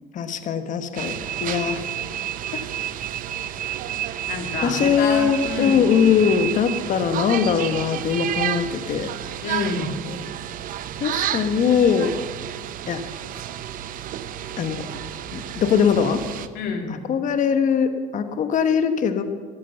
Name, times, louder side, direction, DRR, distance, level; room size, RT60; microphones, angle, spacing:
voice 1, 0.1-1.8 2.5-2.7 4.6-9.1 11.0-12.1 12.9-13.0 14.6-14.8 15.3-16.2 16.9-19.2, left 7 dB, 50° left, 9 dB, 1.2 m, -21 dB
sound 1, 1.0-16.5, right 11 dB, 60° right, 0.7 m, -31 dB
voice 2, 4.3-5.9 9.4-9.9 16.5-16.9, left 4 dB, 75° left, 3 dB, 2.7 m, -28 dB
13.5 x 8.7 x 7.9 m, 1.5 s
supercardioid pair, 90°, 16 cm